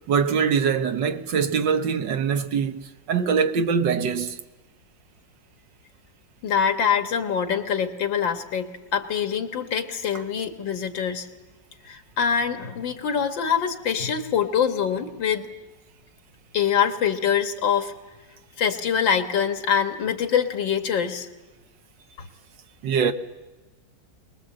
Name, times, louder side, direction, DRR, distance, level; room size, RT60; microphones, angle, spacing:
voice 1, 0.0-4.4 22.8-23.1, right 6 dB, 75° right, 1.7 m, -23 dB
voice 2, 6.4-11.3 11.8-15.5 16.5-17.9 18.6-21.3, left 7 dB, 85° left, 2.2 m, -24 dB
23.0 x 21.0 x 7.7 m
omnidirectional pair, 2.0 m